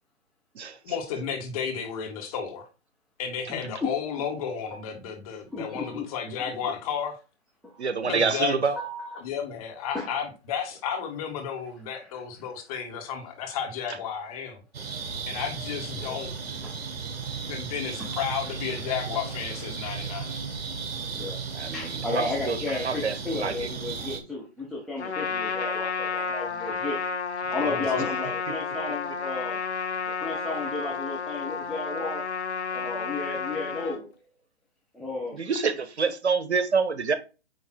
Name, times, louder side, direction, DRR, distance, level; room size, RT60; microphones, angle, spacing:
voice 1, 0.8-2.7 3.2-7.2 8.0-8.6 9.2-14.6 15.3-16.3 17.5-20.4 27.4-28.1, left 7 dB, 35° left, 1.9 m, -33 dB
voice 2, 5.5-6.0 7.6-7.9 8.7-9.2 9.9-10.1 15.9-16.2 18.0-18.1 19.4-19.5 21.1-21.4 21.7-27.0 27.5-29.6 30.2-32.2 32.7-34.2 34.9-35.4, left 2 dB, ahead, 0.5 m, -33 dB
voice 3, 7.8-8.8 21.5-23.7 35.3-37.2, right 5 dB, 75° right, 1.2 m, -27 dB
sound 1, 14.7-24.2, right 5 dB, 60° right, 1.7 m, -35 dB
Trumpet, 25.0-34.0, left 5 dB, 75° left, 1.2 m, -31 dB
9.1 x 3.2 x 4.5 m
figure-of-eight pair, 135°, 33 cm